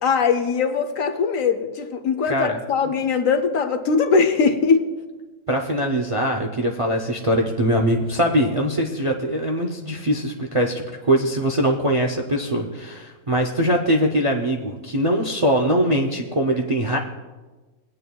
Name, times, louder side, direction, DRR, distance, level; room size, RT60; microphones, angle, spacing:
voice 1, 0.0-4.9, left 5 dB, 65° left, 8 dB, 1.1 m, -21 dB
voice 2, 5.5-17.0, equal, 40° right, 1 dB, 0.5 m, -22 dB
20.5 x 8.6 x 2.3 m, 1.3 s
omnidirectional pair, 1.5 m